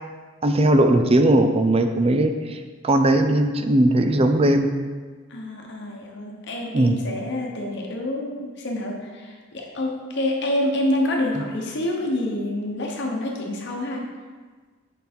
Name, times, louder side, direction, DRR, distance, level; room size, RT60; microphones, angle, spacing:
voice 1, 0.4-4.7 6.7-7.0 11.4-11.5, right 1 dB, 30° right, 7 dB, 0.4 m, -19 dB
voice 2, 5.3-14.1, left 1 dB, 55° left, 0 dB, 1.0 m, -27 dB
6.0 x 5.4 x 4.3 m, 1.4 s
head